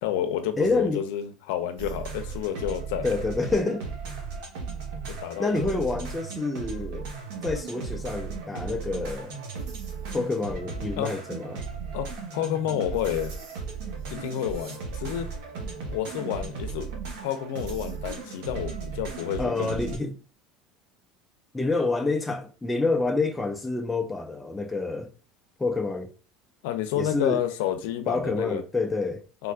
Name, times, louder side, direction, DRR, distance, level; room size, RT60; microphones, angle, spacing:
voice 1, 0.0-3.1 5.1-5.8 11.0-11.1 11.9-13.3 14.1-15.3 15.9-19.8 21.7-21.8 26.6-28.6 29.4-29.5, left 10 dB, 80° left, 0.5 m, -30 dB
voice 2, 0.6-1.0 3.0-3.9 5.4-7.1 7.4-9.4 10.1-11.6 19.4-20.2 21.5-25.1 25.6-26.1 26.9-27.4 28.1-29.2, left 3 dB, 5° left, 0.3 m, -27 dB
sound 1, 1.8-20.0, right 5 dB, 75° right, 1.1 m, -36 dB
3.5 x 2.3 x 2.4 m
cardioid pair, 155°, 0 cm